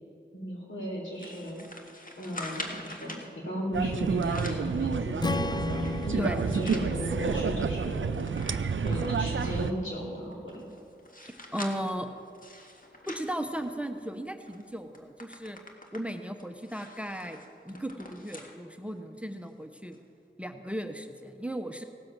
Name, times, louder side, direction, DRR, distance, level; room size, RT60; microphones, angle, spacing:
voice 1, 0.3-1.6 2.2-5.6 6.0-6.2 6.5-8.0 8.8-10.6, equal, 85° left, -3 dB, 3.7 m, -35 dB
sound 1, 1.2-3.3 4.0-4.7 5.2-6.9 7.4-7.5 7.7-9.7 10.3-14.1 14.5-14.6 14.9-18.6 19.0-19.1 19.9-20.0, left 1 dB, 45° left, 1.7 m, -44 dB
sound 2, 3.7-9.7, right 5 dB, 75° right, 0.5 m, -30 dB
Strum, 5.2-9.5, left 3 dB, 20° left, 0.4 m, -36 dB
voice 2, 6.2-6.5 11.2-12.1 13.1-15.6 15.9-17.4 17.7-20.0 20.4-21.8, equal, 5° right, 7 dB, 0.9 m, -36 dB
17.5 x 7.7 x 6.1 m, 2.5 s
wide cardioid pair, 40°, 20 cm